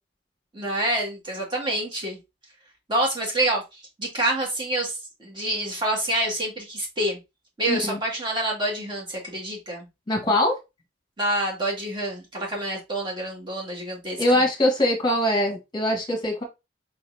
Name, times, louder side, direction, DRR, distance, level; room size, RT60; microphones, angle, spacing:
voice 1, 0.5-2.2 2.9-7.2 7.6-9.9 11.2-14.2, right 1 dB, 25° right, 2.0 m, -27 dB
voice 2, 7.7-8.0 10.1-10.6 14.2-16.4, left 1 dB, 20° left, 1.4 m, -22 dB
4.7 x 4.2 x 2.7 m
head